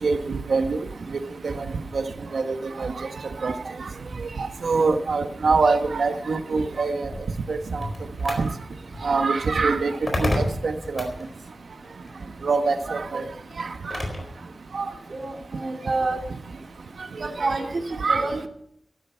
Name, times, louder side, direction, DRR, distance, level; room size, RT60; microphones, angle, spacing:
voice 1, 0.0-0.8 1.4-1.6 1.9-2.0 2.3-2.9 3.4-3.5 3.8-3.9 4.4-7.1 7.5-7.9 8.2-8.5 9.0-9.9 10.2-11.1 12.4-13.2 13.6-13.7 14.7-14.9 17.4-17.5 18.0-18.3, right 4 dB, 75° right, 7 dB, 1.2 m, -24 dB
sound 1, 7.0-14.4, left 1 dB, 35° left, 4.3 m, -32 dB
voice 2, 15.1-16.2 17.2-18.5, right 3 dB, 50° right, 2 dB, 2.9 m, -28 dB
15.0 x 12.5 x 5.7 m, 0.69 s
wide cardioid pair, 120°, 0 cm